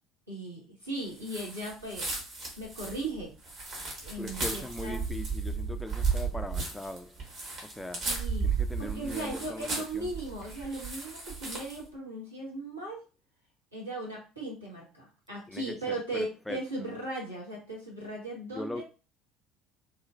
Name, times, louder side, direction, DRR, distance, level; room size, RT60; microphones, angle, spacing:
voice 1, 0.3-2.1 2.6-3.3 4.0-5.0 8.0-8.5 8.8-13.0 13.7-18.8, right 2 dB, 85° right, 1.1 m, -37 dB
sound 1, 1.2-11.9, right 4 dB, 50° right, 1.3 m, -34 dB
voice 2, 4.2-7.3 7.6-8.1 8.4-10.1 15.5-16.6 18.5-18.8, left 1 dB, 10° left, 0.3 m, -40 dB
3.0 x 2.4 x 2.5 m
figure-of-eight pair, 65°, 0 cm